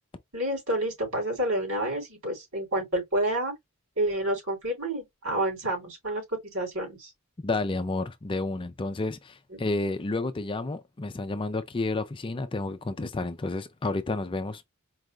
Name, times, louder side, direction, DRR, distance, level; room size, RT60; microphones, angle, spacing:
voice 1, 0.3-3.5 4.0-7.1 9.5-9.6, right 1 dB, 75° right, 3.4 m, -29 dB
voice 2, 7.4-14.6, left 2 dB, 25° left, 0.4 m, -30 dB
4.6 x 2.5 x 3.1 m
head